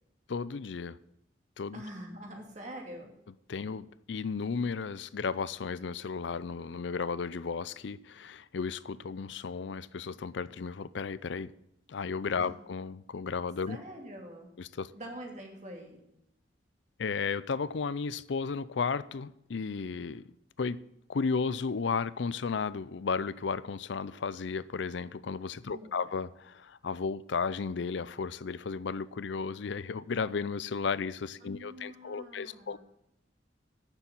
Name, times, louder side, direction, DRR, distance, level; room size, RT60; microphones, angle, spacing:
voice 1, 0.3-1.0 1.6-1.8 3.5-11.5 11.9-13.8 14.6-14.9 17.0-20.3 20.6-20.8 21.1-32.8, left 5 dB, 70° left, 17 dB, 0.5 m, -34 dB
voice 2, 1.7-3.1 12.4-12.5 13.7-14.5 14.9-16.0 25.7-26.1 31.4-32.8, right 1 dB, 40° right, 1 dB, 2.4 m, -45 dB
9.7 x 7.0 x 7.1 m, 0.80 s
head